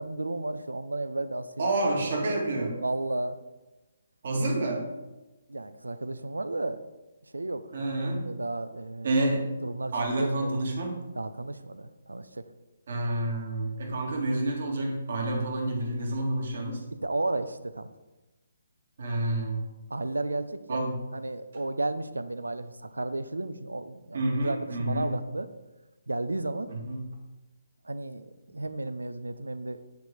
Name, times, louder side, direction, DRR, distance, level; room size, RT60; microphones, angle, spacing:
voice 1, 0.0-1.7 2.8-3.4 5.5-6.8 7.2-7.7 8.3-9.1 9.6-10.6 11.2-12.4 16.9-17.9 19.9-20.8 21.1-25.5 26.1-26.8 27.8-29.8, right 2 dB, 80° right, 12 dB, 0.6 m, -33 dB
voice 2, 1.6-2.8 4.2-4.9 7.7-8.3 9.0-9.5 9.9-11.0 12.9-16.8 19.0-19.7 20.7-21.0 24.1-25.1 26.7-27.1, right 2 dB, 55° right, 0 dB, 2.0 m, -29 dB
9.3 x 4.7 x 5.1 m, 1.1 s
figure-of-eight pair, 140°, 0 cm